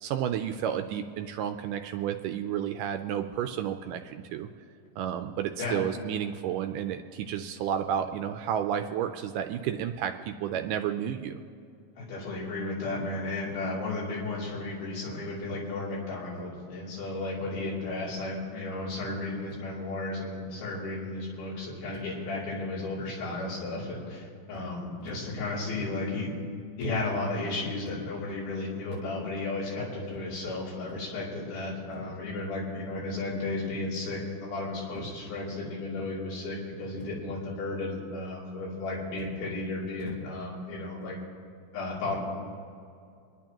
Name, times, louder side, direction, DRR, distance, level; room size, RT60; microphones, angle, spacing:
voice 1, 0.0-4.5 5.0-11.4, right 9 dB, 80° right, 7 dB, 2.0 m, -31 dB
voice 2, 12.0-26.3 26.8-41.2 41.7-42.2, left 2 dB, 90° left, -5 dB, 4.7 m, -34 dB
26.5 x 10.5 x 2.9 m, 2.4 s
omnidirectional pair, 4.1 m